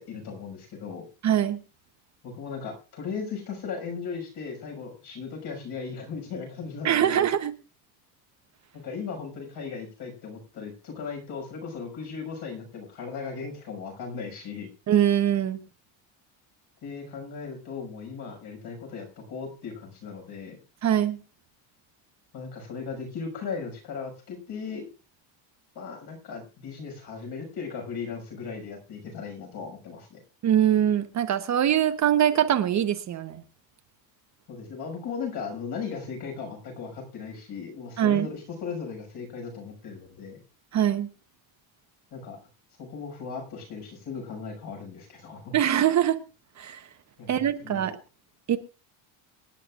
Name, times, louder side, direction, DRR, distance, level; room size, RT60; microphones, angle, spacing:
voice 1, 0.0-1.1 2.2-7.2 8.7-14.7 16.8-20.6 22.3-24.9 25.7-30.2 34.5-40.4 42.1-42.4 42.8-45.5 47.2-47.8, left 5 dB, 55° left, 6.2 m, -37 dB
voice 2, 1.2-1.6 6.8-7.5 14.9-15.6 20.8-21.2 30.4-33.4 38.0-38.3 40.7-41.1 45.5-46.2 46.6-46.9 47.3-47.9 48.5-48.6, right 10 dB, 35° right, 1.0 m, -23 dB
26.5 x 9.9 x 2.5 m
cardioid pair, 155°, 47 cm